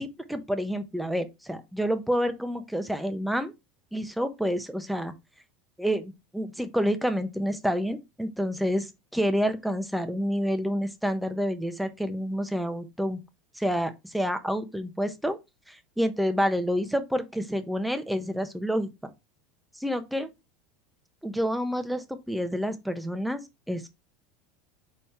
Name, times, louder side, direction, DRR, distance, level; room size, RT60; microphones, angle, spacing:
voice 1, 0.0-3.5 3.9-5.1 5.8-13.2 13.5-15.4 15.7-19.1 19.7-20.3 21.2-23.9, equal, ahead, 1.1 m, -28 dB
5.6 x 4.1 x 4.4 m
hypercardioid pair, 90°, 0 cm